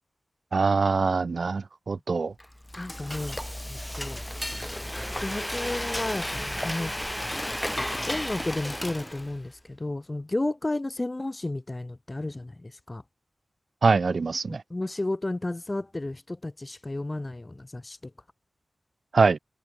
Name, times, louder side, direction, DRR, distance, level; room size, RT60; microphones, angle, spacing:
voice 1, 0.5-2.3 13.8-14.6 19.1-19.4, right 4 dB, 70° right, 0.8 m, -23 dB
Frying (food), 2.4-9.5, left 1 dB, 10° left, 0.8 m, -33 dB
voice 2, 2.8-3.4 3.6-4.2 5.1-6.9 8.1-13.0 14.5-18.1, left 2 dB, 30° left, 1.7 m, -32 dB
wide cardioid pair, 70°, 0 cm